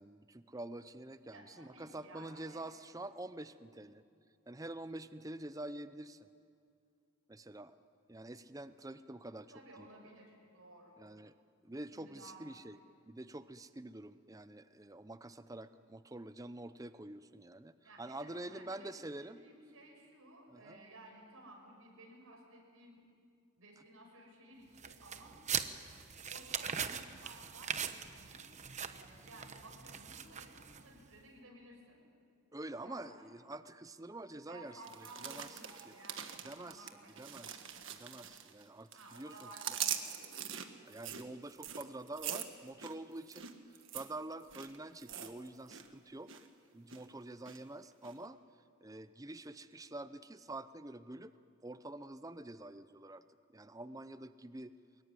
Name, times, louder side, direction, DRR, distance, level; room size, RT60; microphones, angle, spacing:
voice 1, 0.0-4.0 4.5-6.3 7.3-7.7 8.1-9.9 11.0-11.3 11.6-12.8 13.1-19.4 20.5-20.8 32.5-34.8 35.2-35.5 35.9-36.0 36.4-36.9 37.2-37.6 38.0-39.3 40.8-43.5 43.9-46.3 46.7-48.4 48.8-51.3 51.6-53.2 53.5-54.8, right 2 dB, 15° right, 12 dB, 0.6 m, -47 dB
voice 2, 1.3-2.6 9.5-10.9 11.9-12.4 12.7-12.8 17.8-18.9 19.2-23.0 23.6-25.4 26.3-27.8 28.1-28.5 28.8-32.0 32.8-33.3 34.5-37.4 38.9-40.7, right 2 dB, 80° right, 0 dB, 6.4 m, -56 dB
sound 1, 24.8-31.0, right 7 dB, 35° right, 0.9 m, -41 dB
sound 2, 34.8-38.6 38.9-45.9 46.1-46.5 46.9-47.6 48.0-48.1, right 9 dB, 60° right, 1.6 m, -43 dB
24.0 x 21.5 x 9.7 m, 2.4 s
head